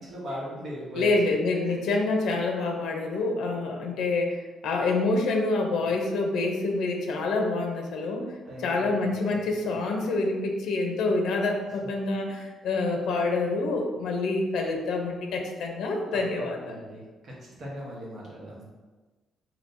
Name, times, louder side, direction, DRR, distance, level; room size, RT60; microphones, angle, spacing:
voice 1, 0.0-1.3 1.6-1.8 3.1-3.2 8.4-9.7 16.1-18.7, equal, 40° right, -4 dB, 1.0 m, -39 dB
voice 2, 0.9-8.3 8.6-16.6, left 3 dB, 80° left, 2 dB, 0.6 m, -27 dB
5.1 x 2.8 x 2.6 m, 1.3 s
cardioid pair, 180°, 0 cm